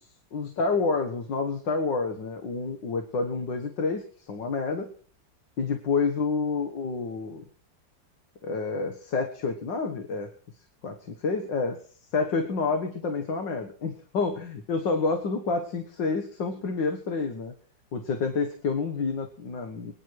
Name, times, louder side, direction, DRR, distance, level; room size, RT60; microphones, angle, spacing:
voice 1, 0.0-4.9 5.6-7.5 8.4-10.3 10.8-11.8 12.1-17.5 17.9-19.9, left 4 dB, 70° left, 7 dB, 2.2 m, -29 dB
25.0 x 10.0 x 4.7 m, 0.43 s
omnidirectional pair, 2.0 m